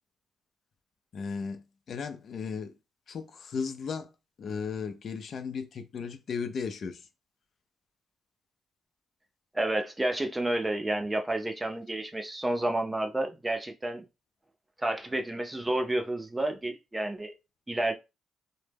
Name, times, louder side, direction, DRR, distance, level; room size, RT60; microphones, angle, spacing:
voice 1, 1.1-1.6 1.9-2.7 3.1-4.1 4.4-7.0, left 5 dB, 55° left, 0.4 m, -35 dB
voice 2, 9.5-14.1 14.8-17.3 17.7-17.9, right 1 dB, 15° right, 0.4 m, -30 dB
2.1 x 2.0 x 3.3 m
cardioid pair, 90°, 0 cm